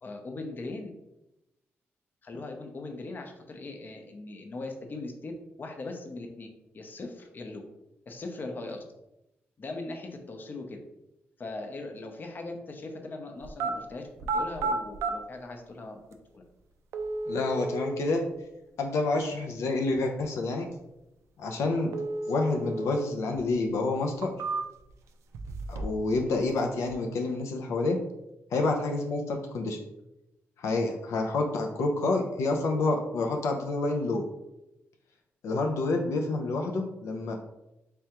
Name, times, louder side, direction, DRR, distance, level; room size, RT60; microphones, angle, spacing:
voice 1, 0.0-0.9 2.2-5.3 5.6-6.5 6.7-7.6 8.1-8.8 9.6-10.8 11.4-14.0 14.3-16.0 16.3-16.4, left 2 dB, 40° left, 4 dB, 0.6 m, -39 dB
sound 1, 13.4-13.7 14.2-15.1 16.1-16.2 16.9-18.0 21.9-23.0 23.3-23.4 24.0-24.9 25.3-26.1 26.3-26.9, right 3 dB, 85° right, 0.3 m, -32 dB
voice 2, 17.3-18.3 18.8-20.7 21.4-21.9 22.3-24.3 25.7-28.0 28.5-29.8 30.6-34.2 35.4-37.4, left 3 dB, 85° left, 2 dB, 0.5 m, -28 dB
3.4 x 3.3 x 2.9 m, 0.92 s
cardioid pair, 100°, 5 cm